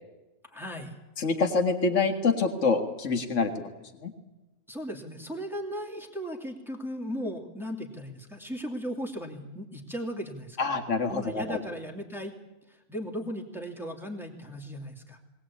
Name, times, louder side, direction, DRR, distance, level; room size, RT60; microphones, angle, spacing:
voice 1, 0.5-0.9 4.7-10.7 11.1-12.3 12.7-15.2, equal, ahead, 0 dB, 2.6 m, -37 dB
voice 2, 1.2-3.7 4.0-4.1 10.6-11.6, left 4 dB, 55° left, 5 dB, 2.1 m, -26 dB
21.5 x 19.0 x 8.5 m, 1.1 s
omnidirectional pair, 1.5 m